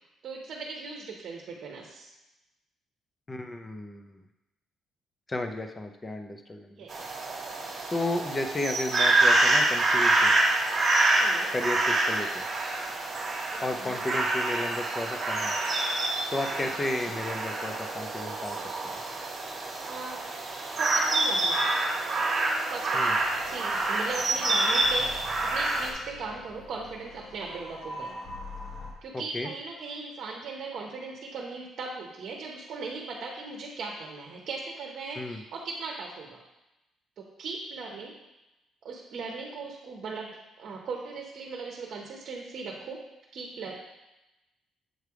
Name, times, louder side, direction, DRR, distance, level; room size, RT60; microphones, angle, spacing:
voice 1, 0.2-2.1 6.8-7.0 11.2-11.5 13.5-14.0 16.6-16.7 17.1-17.2 19.8-20.2 20.7-21.7 22.7-28.1 29.0-36.4 37.2-38.1 38.8-40.3 40.6-43.0 43.3-43.8, right 4 dB, 50° right, 0 dB, 0.9 m, -38 dB
voice 2, 3.3-4.2 5.3-6.8 7.9-10.4 11.5-12.5 13.6-15.5 16.3-18.6 18.8-19.0 22.9-23.1 29.1-29.5 35.2-35.4, left 2 dB, 20° left, 5 dB, 0.5 m, -33 dB
sound 1, 6.9-25.9, right 2 dB, 30° right, 1.6 m, -27 dB
sound 2, 23.1-28.9, left 1 dB, 70° left, 1.6 m, -44 dB
7.7 x 3.3 x 4.7 m, 0.98 s
cardioid pair, 150°, 0 cm